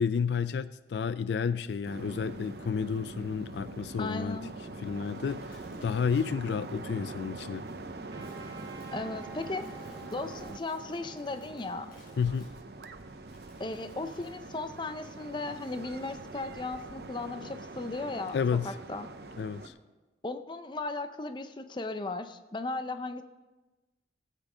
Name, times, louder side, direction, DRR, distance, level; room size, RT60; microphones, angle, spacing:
voice 1, 0.0-4.4 4.8-7.7 12.2-12.5 18.3-18.7 19.4-19.7, left 6 dB, 75° left, 0.4 m, -31 dB
sound 1, 1.7-14.3, left 1 dB, 55° left, 4.6 m, -64 dB
sound 2, 1.9-19.7, right 2 dB, 65° right, 0.7 m, -44 dB
voice 2, 4.0-4.5 8.9-9.7 10.1-11.9 13.6-18.4 18.6-19.1 20.2-23.2, left 2 dB, 25° left, 0.6 m, -36 dB
Trumpet, 8.1-13.1, right 5 dB, 25° right, 2.1 m, -52 dB
16.0 x 8.4 x 5.0 m
head